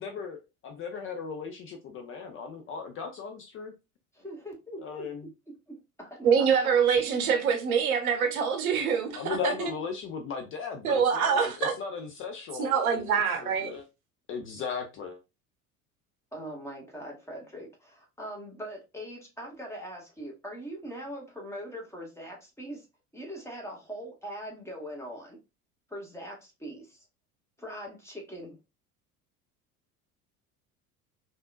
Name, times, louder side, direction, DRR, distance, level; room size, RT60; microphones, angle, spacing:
voice 1, 0.0-3.7 4.8-5.3 9.1-13.8 14.3-15.2, left 5 dB, 30° left, 0.4 m, -37 dB
voice 2, 4.1-5.0 5.7-6.3 16.3-22.9 23.1-25.4 25.9-27.0 27.6-28.6, equal, 5° left, 1.2 m, -41 dB
voice 3, 6.2-9.5 10.8-11.7 12.6-13.7, right 6 dB, 70° right, 0.8 m, -25 dB
3.4 x 2.5 x 2.3 m
figure-of-eight pair, 65°, 45 cm